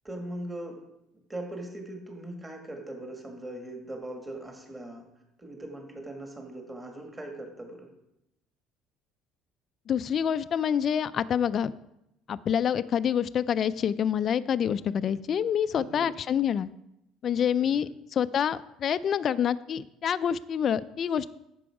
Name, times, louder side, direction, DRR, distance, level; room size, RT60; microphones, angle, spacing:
voice 1, 0.0-0.8 1.3-5.1 5.4-7.9 15.7-16.1 17.6-17.9, right 1 dB, 15° right, 2 dB, 1.7 m, -40 dB
voice 2, 9.9-11.7 12.3-16.7 17.2-21.3, left 8 dB, 40° left, 14 dB, 0.3 m, -27 dB
10.0 x 6.9 x 4.8 m, 0.85 s
cardioid pair, 130°, 0 cm